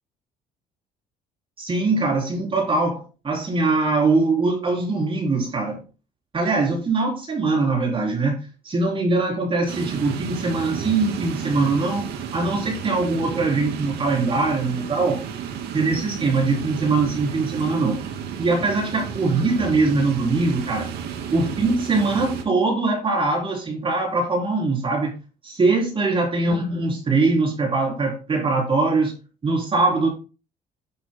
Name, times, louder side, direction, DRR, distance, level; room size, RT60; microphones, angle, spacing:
voice 1, 1.6-5.8 6.3-12.1 12.3-15.2 15.7-18.0 18.4-20.9 21.3-25.1 25.4-29.1 29.4-30.1, right 3 dB, 30° right, -1 dB, 3.9 m, -22 dB
sound 1, 9.7-22.4, right 8 dB, 75° right, 2.5 m, -32 dB
10.5 x 10.5 x 2.3 m, 0.31 s
cardioid pair, 110°, 17 cm